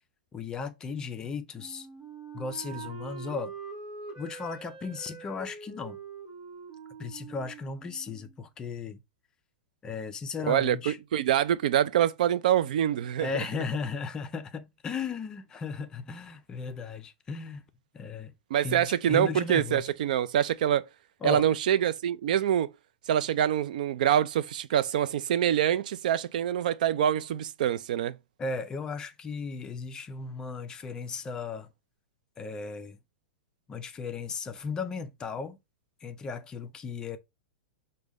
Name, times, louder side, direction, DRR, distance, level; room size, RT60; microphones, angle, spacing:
voice 1, 0.3-1.9 2.3-3.5 4.2-6.0 7.0-9.0 9.8-11.0 13.2-17.6 17.9-18.3 18.6-19.9 21.2-21.5 28.4-31.7 32.4-33.0 33.7-35.6 36.0-37.2, left 5 dB, 15° left, 0.3 m, -36 dB
Wind instrument woodwind instrument, 1.5-8.4, right 5 dB, 15° right, 0.9 m, -44 dB
voice 2, 10.5-13.3 18.5-20.8 21.2-22.7 23.1-28.1, right 10 dB, 65° right, 0.3 m, -25 dB
4.9 x 2.2 x 3.4 m
supercardioid pair, 160°, 5 cm